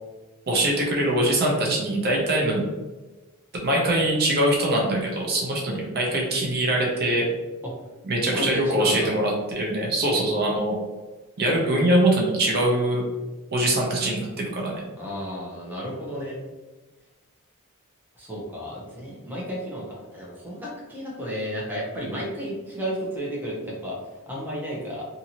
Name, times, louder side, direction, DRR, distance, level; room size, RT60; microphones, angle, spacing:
voice 1, 0.5-2.6 3.6-7.3 8.0-10.8 11.4-13.0 13.5-14.8, right 1 dB, 45° right, -2 dB, 0.6 m, -23 dB
voice 2, 8.3-9.1 15.0-16.4 18.2-24.0 24.3-25.0, equal, 10° right, -5 dB, 0.7 m, -32 dB
2.7 x 2.6 x 2.8 m, 1.2 s
head